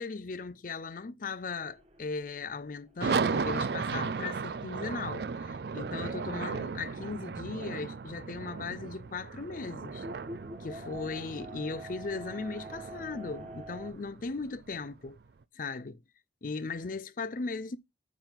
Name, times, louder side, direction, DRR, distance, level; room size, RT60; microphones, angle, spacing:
voice 1, 0.0-10.1 10.6-15.2 15.5-16.0 16.4-17.8, left 4 dB, 45° left, 0.5 m, -38 dB
Fan power cycling., 1.5-5.2 5.6-5.7 6.2-7.8 8.3-8.4 9.8-13.9, right 1 dB, 35° right, 1.6 m, -48 dB
sound 1, 3.0-15.2, right 5 dB, 60° right, 0.4 m, -36 dB
9.1 x 3.5 x 5.7 m
head